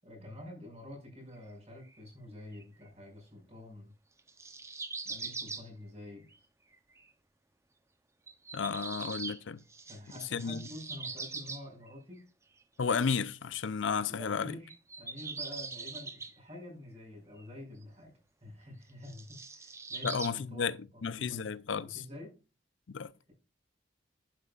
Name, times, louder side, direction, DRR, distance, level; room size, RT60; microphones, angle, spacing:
voice 1, 0.0-3.9 5.0-6.3 9.9-12.2 14.1-18.1 18.4-21.5 21.9-22.3, left 1 dB, 35° right, 5.3 m, -48 dB
sound 1, 1.9-2.0 2.5-2.6 4.2-5.7 6.3-6.4 6.7-7.0 8.3-9.4 9.7-11.9 14.7-16.3 17.4-17.5 18.9-20.3, right 4 dB, 15° right, 0.7 m, -42 dB
voice 2, 8.5-9.6 10.3-10.7 12.8-14.6 20.0-22.0 22.9-23.1, left 6 dB, 85° left, 0.5 m, -33 dB
11.5 x 9.5 x 2.4 m
head